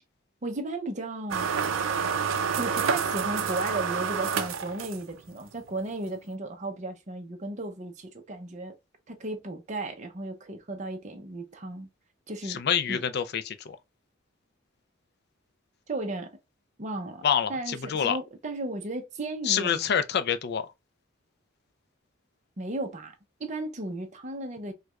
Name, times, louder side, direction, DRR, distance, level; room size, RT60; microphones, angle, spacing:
voice 1, 0.4-1.5 2.6-8.8 9.1-11.9 12.3-12.6 12.9-13.0 15.9-16.4 16.8-17.2 17.5-19.9 22.6-23.1 23.4-24.7, right 2 dB, 35° right, 0.7 m, -35 dB
sound 1, 1.3-5.3, right 6 dB, 75° right, 0.5 m, -28 dB
voice 2, 12.4-13.8 17.2-18.2 19.4-20.7, left 8 dB, 55° left, 0.4 m, -27 dB
4.6 x 2.2 x 2.3 m
head